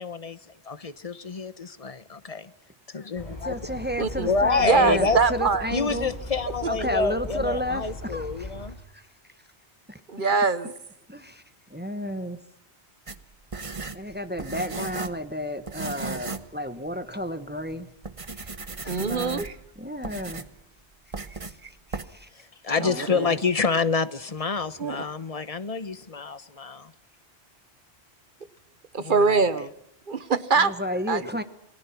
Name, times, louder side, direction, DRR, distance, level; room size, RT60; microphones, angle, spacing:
voice 1, 0.0-2.5 2.9-3.6 4.2-5.2 5.7-8.8 22.3-26.9 29.0-29.6, left 4 dB, 35° left, 0.9 m, -28 dB
sound 1, 3.1-8.7, left 2 dB, 15° left, 8.1 m, -38 dB
voice 2, 3.4-6.1 6.7-8.5 8.9-9.0 9.9-10.0 11.1-11.4 11.7-12.4 13.9-17.9 18.3-18.5 18.8-19.5 19.8-20.4 21.4-21.6 21.9-22.3 22.9-23.4 30.6-31.4, equal, 10° right, 1.1 m, -32 dB
voice 3, 4.0-4.3 4.6-5.7 10.1-10.7 18.8-19.6 21.6-21.7 22.8-23.3 24.8-25.0 28.9-29.7 30.1-30.7 31.1-31.3, right 4 dB, 50° right, 1.1 m, -23 dB
sound 2, 13.1-15.3 15.7-16.5 16.9-17.0 17.6-17.7 18.0-19.7 20.0-20.6 21.1-21.6 21.9-22.0, right 4 dB, 30° right, 1.1 m, -35 dB
28.0 x 19.5 x 5.9 m
omnidirectional pair, 1.1 m